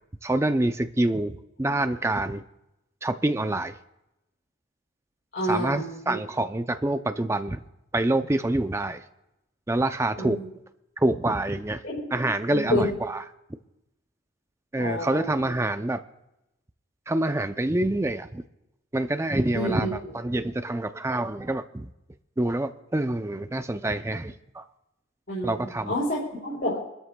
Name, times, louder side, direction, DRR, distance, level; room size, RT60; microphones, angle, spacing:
voice 1, 0.2-2.4 3.0-3.8 5.5-7.6 7.9-9.0 9.7-10.4 11.0-11.8 12.1-13.2 14.7-16.0 17.1-18.4 18.9-21.9 22.4-24.6 25.4-26.0, right 1 dB, 15° right, 9 dB, 0.4 m, -26 dB
voice 2, 5.3-6.1 10.2-10.5 11.8-12.0 12.5-12.9 14.8-15.3 19.5-19.9 25.3-26.8, left 1 dB, 55° left, -5 dB, 4.7 m, -28 dB
27.0 x 12.5 x 2.2 m, 0.90 s
head